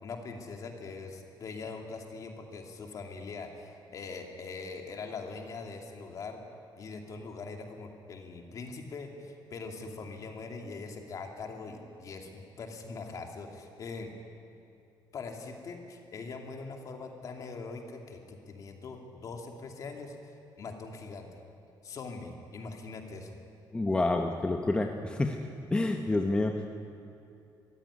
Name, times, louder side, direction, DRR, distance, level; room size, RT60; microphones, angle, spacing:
voice 1, 0.0-6.4 6.8-14.1 15.1-20.1 20.6-21.3 21.8-23.4, left 4 dB, 45° left, 3 dB, 2.6 m, -42 dB
voice 2, 23.7-25.4 25.7-26.7, left 2 dB, 10° left, 4 dB, 1.0 m, -28 dB
22.0 x 15.5 x 9.8 m, 2.6 s
cardioid pair, 155°, 8 cm